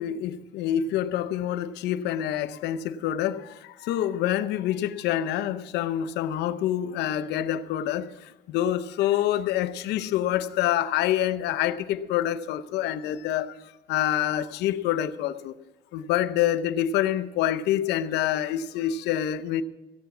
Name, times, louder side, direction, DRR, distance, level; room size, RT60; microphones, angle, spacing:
voice 1, 0.0-3.4 3.8-8.1 8.5-13.5 13.9-15.5 15.9-19.6, left 11 dB, 85° left, 0.8 m, -26 dB
16.5 x 8.2 x 6.0 m
cardioid pair, 110°, 17 cm